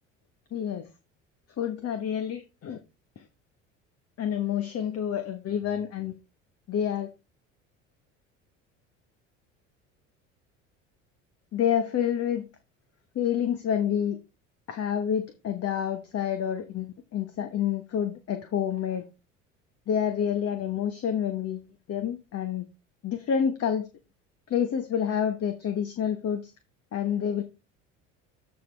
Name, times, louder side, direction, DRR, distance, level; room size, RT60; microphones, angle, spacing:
voice 1, 0.5-0.9 1.6-2.8 3.2-3.3 4.2-6.2 6.7-7.1 11.5-12.5 13.1-14.2 14.7-19.0 19.9-21.6 21.9-22.7 23.0-23.9 24.5-26.5 26.9-27.4, left 8 dB, 40° left, 9 dB, 1.2 m, -28 dB
13.5 x 4.6 x 3.4 m, 0.27 s
hypercardioid pair, 65°, 38 cm